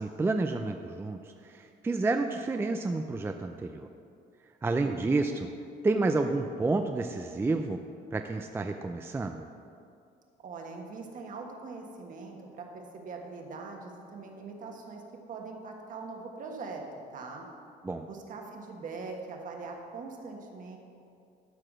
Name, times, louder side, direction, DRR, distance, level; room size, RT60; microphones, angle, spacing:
voice 1, 0.0-3.9 4.6-5.5 5.8-7.8 8.1-9.4 17.8-18.1, right 3 dB, 15° right, 5 dB, 0.4 m, -30 dB
voice 2, 4.8-5.5 10.4-15.0 15.3-16.8 17.1-17.5 18.1-20.8, right 4 dB, 50° right, 1 dB, 1.5 m, -42 dB
12.0 x 4.8 x 6.2 m, 2.5 s
cardioid pair, 110°, 17 cm